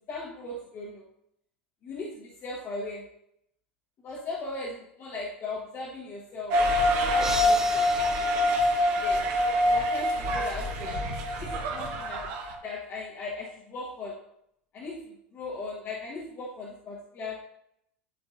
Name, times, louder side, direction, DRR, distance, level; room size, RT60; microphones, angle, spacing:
voice 1, 0.1-1.0 1.8-3.1 4.0-6.6 7.0-7.8 9.0-9.3 9.6-11.0 11.4-12.3 12.6-14.3 14.7-17.4, left 3 dB, 40° left, -3 dB, 1.3 m, -38 dB
sound 1, 6.5-12.5, left 1 dB, 55° right, 1.2 m, -25 dB
sound 2, 7.2-9.5, right 2 dB, 10° right, 0.9 m, -38 dB
11.0 x 4.3 x 2.6 m, 0.75 s
hypercardioid pair, 85°, 6 cm